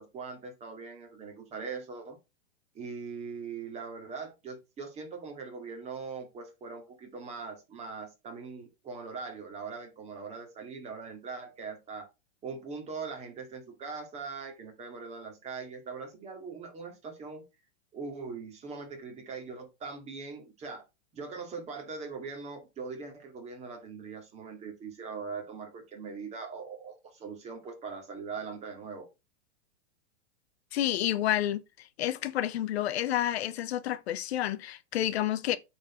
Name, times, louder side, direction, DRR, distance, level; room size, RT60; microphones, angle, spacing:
voice 1, 0.0-2.2 2.7-12.1 12.4-17.4 17.9-20.8 21.1-29.1, right 5 dB, 20° right, 2.2 m, -41 dB
voice 2, 30.7-35.6, left 12 dB, 65° left, 0.9 m, -30 dB
8.6 x 4.3 x 4.4 m
supercardioid pair, 160°, 34 cm